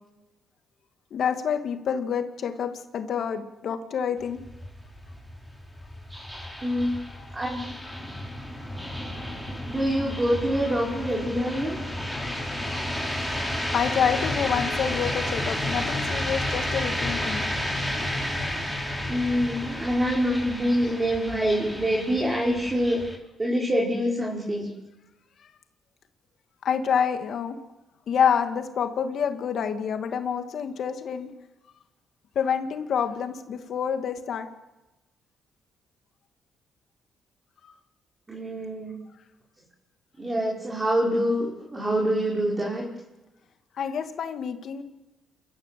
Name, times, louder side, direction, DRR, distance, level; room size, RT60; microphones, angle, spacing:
voice 1, 1.1-4.4 7.2-7.3 12.1-13.5 13.7-17.4 26.6-27.6 28.1-31.3 32.4-34.5 37.6-37.7 43.8-44.8, left 7 dB, 65° left, 7 dB, 2.2 m, -28 dB
sound 1, 4.2-23.2, left 1 dB, 5° right, 4.8 m, -32 dB
voice 2, 6.6-7.1 7.3-7.6 9.6-11.8 19.1-23.0 23.4-24.7 38.3-39.0 40.2-42.9, equal, 20° right, -3 dB, 5.7 m, -25 dB
28.0 x 14.0 x 7.7 m, 1.0 s
cardioid pair, 90°, 0 cm